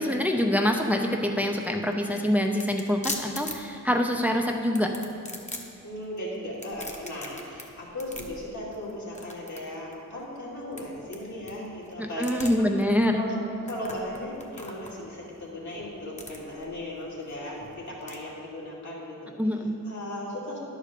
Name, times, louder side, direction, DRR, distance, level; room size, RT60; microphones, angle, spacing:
voice 1, 0.0-4.9 12.0-13.2 19.4-19.7, equal, 5° right, 2 dB, 0.6 m, -25 dB
sound 1, 1.5-18.2, left 2 dB, 20° left, 1.1 m, -42 dB
voice 2, 5.8-12.7 13.2-19.3 19.8-20.6, left 1 dB, 65° left, -4 dB, 2.5 m, -37 dB
10.5 x 5.0 x 6.7 m, 2.7 s
cardioid pair, 85°, 31 cm